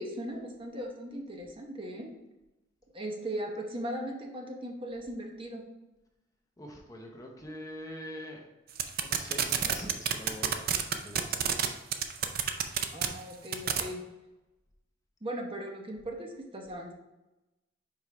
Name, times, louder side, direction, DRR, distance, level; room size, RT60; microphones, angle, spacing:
voice 1, 0.0-2.1 2.9-5.6 12.9-14.0 15.2-16.9, right 1 dB, 30° right, 1 dB, 0.9 m, -38 dB
voice 2, 6.6-8.4 9.0-11.8, left 1 dB, 20° left, 1 dB, 0.7 m, -44 dB
sound 1, 8.8-11.7 11.9-13.1 13.5-13.8, right 9 dB, 50° right, 0.5 m, -27 dB
5.3 x 4.6 x 4.8 m, 1.0 s
head